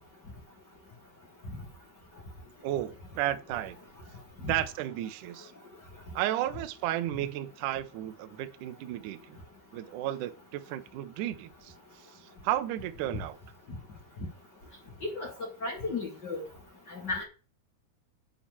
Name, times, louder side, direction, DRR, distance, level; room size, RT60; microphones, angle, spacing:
voice 1, 2.6-3.8 4.4-5.5 6.1-9.4 9.7-11.7 12.4-13.4, right 13 dB, 75° right, 1.8 m, -33 dB
voice 2, 15.6-16.4 16.9-17.2, left 3 dB, 35° left, 2.0 m, -34 dB
9.8 x 4.4 x 6.9 m
omnidirectional pair, 4.7 m